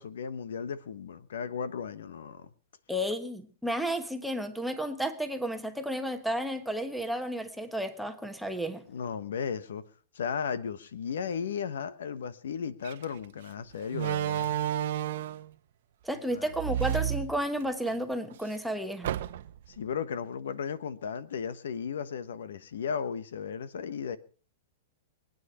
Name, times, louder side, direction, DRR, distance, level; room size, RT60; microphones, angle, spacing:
voice 1, 0.0-2.5 8.9-9.8 10.1-14.5 16.3-16.5 19.7-24.2, left 6 dB, 85° left, 1.2 m, -35 dB
voice 2, 2.9-8.8 16.0-19.1, equal, ahead, 1.2 m, -32 dB
Slam, 12.8-13.0 13.9-15.5 16.5-17.9 18.3-18.4 19.0-19.7, right 11 dB, 60° right, 0.9 m, -31 dB
23.5 x 9.3 x 5.7 m
hypercardioid pair, 160°, 0 cm